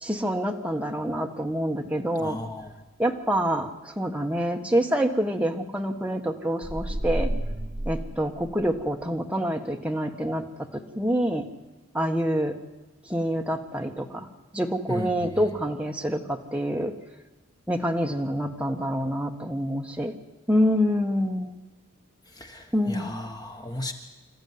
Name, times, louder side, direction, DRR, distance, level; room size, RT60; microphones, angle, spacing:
voice 1, 0.0-2.4 3.0-7.3 7.8-11.4 11.9-12.6 13.1-14.3 14.5-16.9 17.7-20.1 20.5-21.5 22.7-23.2, equal, 5° right, 2 dB, 1.4 m, -26 dB
voice 2, 2.2-2.7 14.9-15.4 22.3-23.9, left 1 dB, 20° left, 4 dB, 1.3 m, -35 dB
sound 1, 6.6-9.0, right 1 dB, 20° right, 1.0 m, -31 dB
26.5 x 14.0 x 9.6 m, 1.1 s
head